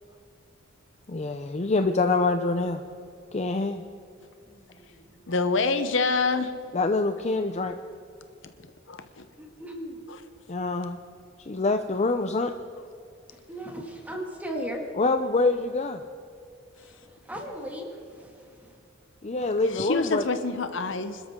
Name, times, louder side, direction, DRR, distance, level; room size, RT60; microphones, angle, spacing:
voice 1, 1.1-2.8 3.3-3.8 6.7-7.8 10.5-11.0 11.4-12.5 15.0-16.0 19.2-20.2, left 3 dB, 35° left, 6 dB, 0.6 m, -25 dB
voice 2, 4.5-5.3 9.4-10.0 13.3-14.8 16.8-17.9 18.2-18.7, equal, 10° right, 0 dB, 2.3 m, -38 dB
voice 3, 5.3-6.5 8.4-8.5 8.9-9.2 10.1-10.2 12.7-12.8 19.7-21.2, left 3 dB, 70° left, 9 dB, 0.9 m, -26 dB
26.0 x 13.0 x 3.8 m, 2.5 s
head